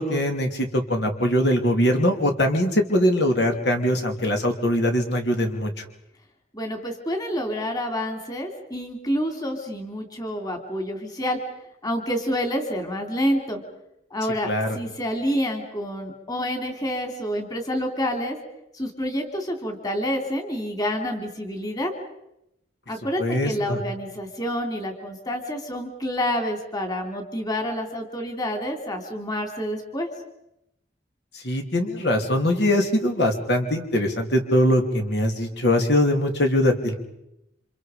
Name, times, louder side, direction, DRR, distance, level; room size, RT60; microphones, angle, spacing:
voice 1, 0.0-5.8 14.5-14.8 23.2-23.8 31.3-36.9, left 1 dB, 60° left, 4 dB, 3.0 m, -22 dB
voice 2, 6.5-11.4 11.8-13.6 14.1-14.5 14.7-18.4 18.7-21.9 22.9-30.1, equal, 20° left, 4 dB, 3.4 m, -28 dB
29.5 x 27.0 x 5.2 m, 0.84 s
head